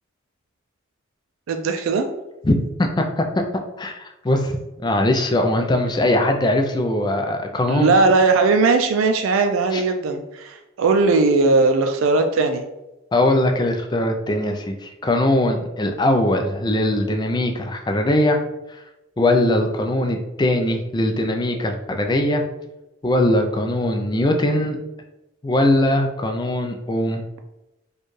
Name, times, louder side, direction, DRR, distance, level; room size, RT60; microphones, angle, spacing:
voice 1, 1.5-2.1 7.6-12.6, right 3 dB, 85° right, 6 dB, 0.4 m, -18 dB
voice 2, 2.4-4.5 4.8-7.9 9.7-9.8 13.1-18.4 19.2-22.4 23.0-24.8 25.4-27.2, left 1 dB, 20° left, 4 dB, 0.3 m, -21 dB
4.3 x 2.3 x 3.1 m, 0.98 s
head